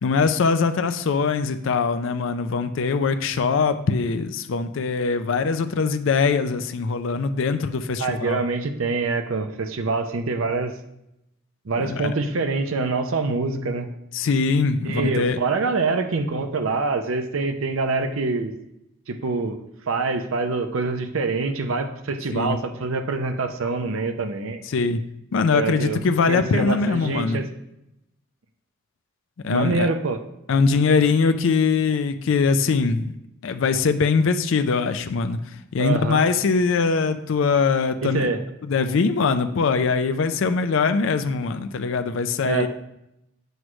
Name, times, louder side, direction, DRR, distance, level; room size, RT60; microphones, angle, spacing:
voice 1, 0.0-8.4 11.8-12.1 14.1-15.4 22.3-22.6 24.7-25.0 25.3-27.4 29.4-29.9 30.5-33.1 33.4-35.4 35.7-38.3 38.6-42.7, left 4 dB, 65° left, 9 dB, 0.4 m, -22 dB
voice 2, 8.0-10.7 11.7-13.9 14.8-18.5 19.1-19.6 19.9-24.6 25.5-26.0 26.3-27.5 29.5-30.2 35.8-36.2 38.0-38.4 42.4-42.7, right 3 dB, 75° right, 7 dB, 0.6 m, -25 dB
7.9 x 3.1 x 6.1 m, 0.84 s
head